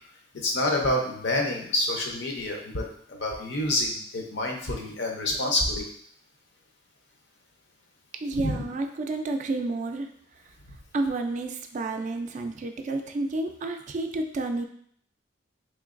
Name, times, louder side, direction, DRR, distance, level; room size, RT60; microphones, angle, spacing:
voice 1, 0.3-5.8 8.4-8.5, left 1 dB, 65° left, 1 dB, 0.7 m, -27 dB
voice 2, 8.2-10.1 10.9-14.6, right 2 dB, 40° right, 5 dB, 0.3 m, -30 dB
3.7 x 3.1 x 2.5 m, 0.63 s
head